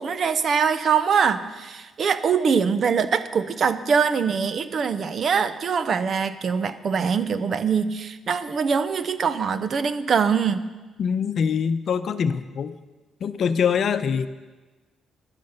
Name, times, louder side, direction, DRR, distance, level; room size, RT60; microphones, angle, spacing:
voice 1, 0.0-10.6, right 6 dB, 50° right, 12 dB, 0.8 m, -23 dB
voice 2, 11.0-12.8 13.2-14.3, left 6 dB, 60° left, 11 dB, 0.8 m, -24 dB
14.5 x 12.0 x 5.7 m, 1.2 s
cardioid pair, 90°, 0 cm